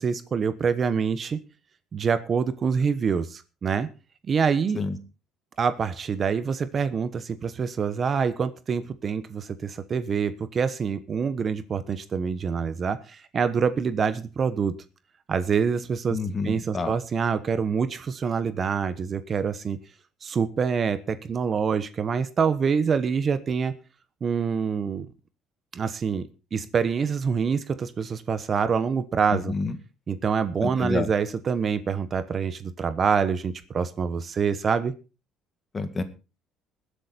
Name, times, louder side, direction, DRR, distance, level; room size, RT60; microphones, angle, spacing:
voice 1, 0.0-1.4 1.9-3.9 4.3-4.8 5.6-14.8 15.3-16.2 16.4-19.8 20.2-23.7 24.2-25.1 25.7-29.5 30.1-34.9, right 6 dB, 35° right, 13 dB, 1.0 m, -26 dB
voice 2, 16.1-16.9 29.3-29.8 30.6-31.1 35.7-36.0, left 3 dB, 25° left, 10 dB, 1.7 m, -28 dB
20.5 x 8.2 x 4.3 m, 0.32 s
cardioid pair, 130°, 0 cm